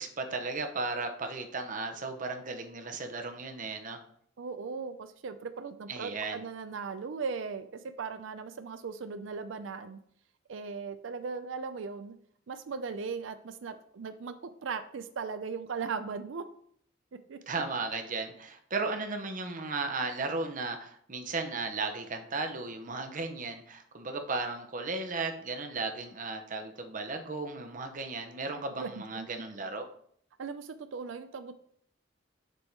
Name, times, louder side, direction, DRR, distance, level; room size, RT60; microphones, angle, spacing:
voice 1, 0.0-4.0 5.9-6.4 17.5-29.8, right 3 dB, 45° right, 6 dB, 0.8 m, -35 dB
voice 2, 4.4-10.0 10.5-12.2 12.5-16.4 17.3-17.4 28.8-28.9 29.1-29.3 30.4-31.6, right 5 dB, 75° right, 10 dB, 0.5 m, -38 dB
6.8 x 3.6 x 4.6 m, 0.63 s
head